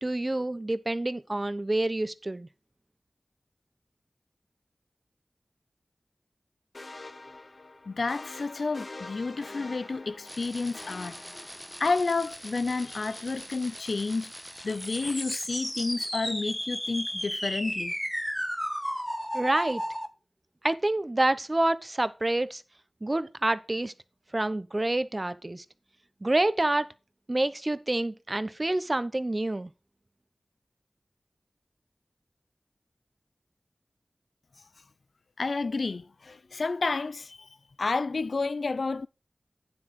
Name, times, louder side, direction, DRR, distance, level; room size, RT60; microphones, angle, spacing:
voice 1, 0.0-2.5 19.3-19.8 20.6-22.6 23.0-23.9 24.3-25.6 26.2-26.9 27.3-29.7, right 2 dB, 35° right, 0.8 m, -27 dB
sound 1, 6.7-12.1, left 2 dB, 60° left, 1.2 m, -45 dB
voice 2, 7.9-11.2 11.8-14.3 14.6-17.9 35.4-37.5 37.8-39.1, left 3 dB, 80° left, 0.4 m, -30 dB
sound 2, 10.3-20.1, equal, 5° left, 1.1 m, -35 dB
9.4 x 7.6 x 4.6 m
wide cardioid pair, 50°, 0 cm